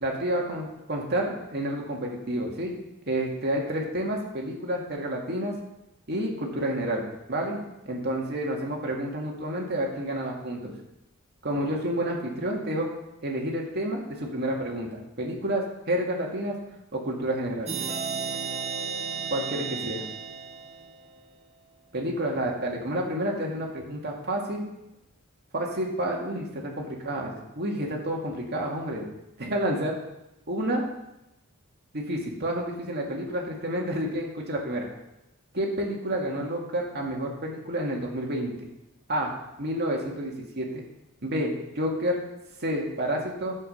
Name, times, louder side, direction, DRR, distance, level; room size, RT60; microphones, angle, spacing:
voice 1, 0.0-2.8 3.1-5.6 6.1-7.6 7.9-10.7 11.4-12.9 13.2-16.6 16.9-17.7 19.3-20.0 21.9-24.6 25.5-29.1 29.4-29.9 30.5-30.8 31.9-34.9 35.5-38.7 39.1-39.3 39.6-40.8 41.2-42.2 42.6-43.5, right 1 dB, 50° right, -1 dB, 2.0 m, -29 dB
sound 1, 17.7-21.2, right 6 dB, 30° right, 0.9 m, -33 dB
10.5 x 7.5 x 5.4 m, 0.90 s
head